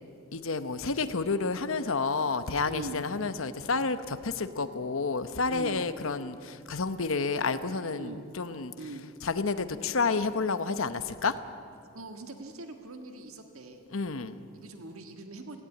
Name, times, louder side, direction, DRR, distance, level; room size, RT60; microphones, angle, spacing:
voice 1, 0.3-8.7 9.2-11.4 13.9-14.4, left 4 dB, 65° left, 11 dB, 1.0 m, -30 dB
voice 2, 2.6-3.0 5.5-5.8 7.9-8.2 8.8-9.0 11.9-13.8 14.5-15.6, right 2 dB, 80° right, 5 dB, 1.7 m, -42 dB
18.0 x 16.5 x 9.1 m, 2.5 s
head